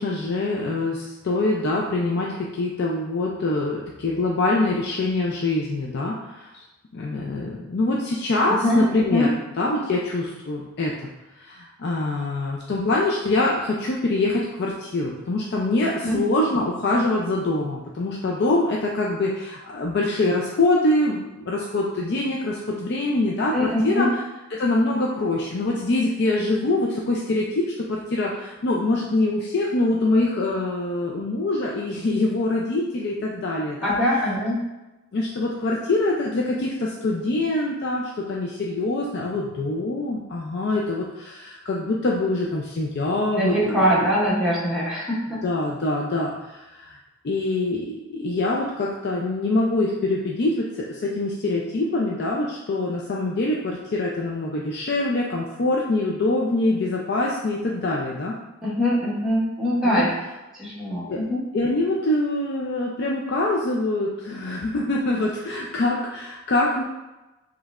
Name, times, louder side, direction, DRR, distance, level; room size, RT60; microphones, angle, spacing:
voice 1, 0.0-6.6 6.9-9.3 9.6-11.1 11.4-24.1 24.6-33.9 35.1-44.1 45.4-47.0 47.2-58.3 59.8-60.0 61.1-61.2 61.5-66.8, left 2 dB, 55° left, -2 dB, 0.4 m, -24 dB
voice 2, 8.5-8.8 9.1-9.3 16.0-16.2 23.5-24.1 33.8-34.7 43.3-45.4 58.6-60.1 60.6-61.4, equal, 5° right, -8 dB, 1.2 m, -22 dB
5.2 x 3.3 x 2.4 m, 1.1 s
head